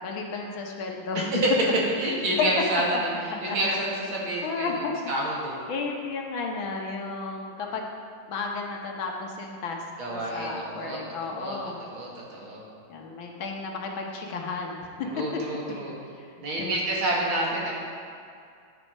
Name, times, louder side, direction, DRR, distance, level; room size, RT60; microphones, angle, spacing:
voice 1, 0.0-1.3 3.5-3.6 4.4-4.9 5.7-7.9 8.3-9.8 10.1-11.8 12.9-15.1 16.6-16.7, left 4 dB, 75° left, 1 dB, 1.9 m, -33 dB
voice 2, 1.1-1.5 2.0-5.6 10.0-11.0 11.3-12.6 15.1-15.9 16.4-17.7, right 1 dB, 85° right, -4 dB, 2.8 m, -29 dB
9.8 x 7.8 x 5.5 m, 2.3 s
omnidirectional pair, 2.2 m